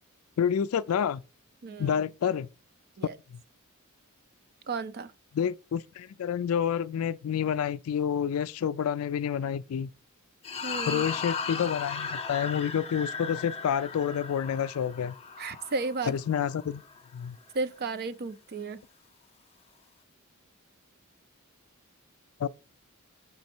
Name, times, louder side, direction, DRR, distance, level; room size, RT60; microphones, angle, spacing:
voice 1, 0.4-1.2 1.8-2.5 3.3-3.4 5.3-9.9 10.9-15.1 16.0-16.8 17.1-17.4 22.4-22.5, left 8 dB, 75° left, 0.3 m, -29 dB
voice 2, 1.6-2.0 3.0-3.2 4.7-5.1 10.6-11.0 15.4-16.1 17.5-18.8, right 3 dB, 50° right, 0.5 m, -33 dB
sound 1, 10.4-17.0, left 5 dB, 30° left, 0.7 m, -37 dB
5.5 x 5.3 x 4.4 m
head